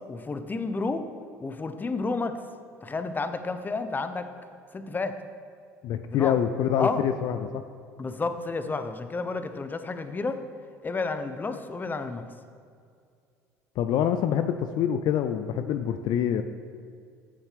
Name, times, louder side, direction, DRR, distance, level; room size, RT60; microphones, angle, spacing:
voice 1, 0.1-1.1 1.4-2.4 2.8-4.3 4.7-5.2 6.1-6.3 6.8-7.0 8.0-10.4 10.8-12.2, left 3 dB, 20° left, 9 dB, 0.8 m, -31 dB
voice 2, 5.8-7.6 13.8-16.4, left 9 dB, 55° left, 9 dB, 0.5 m, -26 dB
14.0 x 7.2 x 3.4 m, 2.2 s
hypercardioid pair, 65°, 9 cm